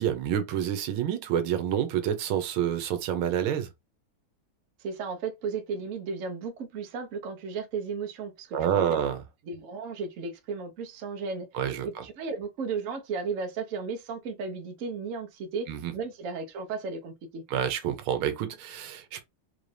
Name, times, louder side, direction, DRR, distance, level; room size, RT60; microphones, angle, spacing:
voice 1, 0.0-3.7 8.5-9.2 11.5-12.0 15.7-15.9 17.5-19.2, right 9 dB, 90° right, 1.6 m, -28 dB
voice 2, 4.8-9.0 9.5-11.5 11.8-15.7 15.9-17.4, right 4 dB, 60° right, 0.9 m, -34 dB
4.3 x 2.6 x 3.2 m
omnidirectional pair, 2.3 m